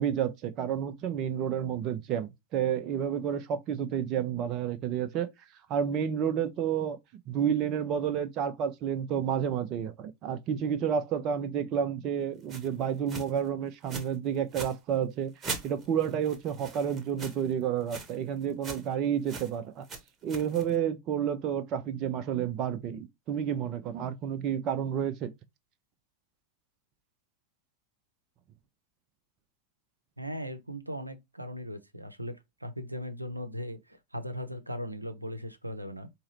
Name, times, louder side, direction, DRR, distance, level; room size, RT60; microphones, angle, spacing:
voice 1, 0.0-5.3 5.7-7.0 7.3-19.9 20.2-25.3, right 8 dB, 35° right, 0.6 m, -30 dB
sound 1, 12.5-12.7 13.1-13.4 13.9-14.1 14.4-14.7 15.4-17.5 17.8-18.1 18.4-18.9 19.3-19.5 19.8-20.8, right 3 dB, 20° right, 1.1 m, -40 dB
voice 2, 30.2-36.1, equal, 85° right, 0.6 m, -38 dB
4.8 x 3.0 x 2.8 m
figure-of-eight pair, 90°, 0 cm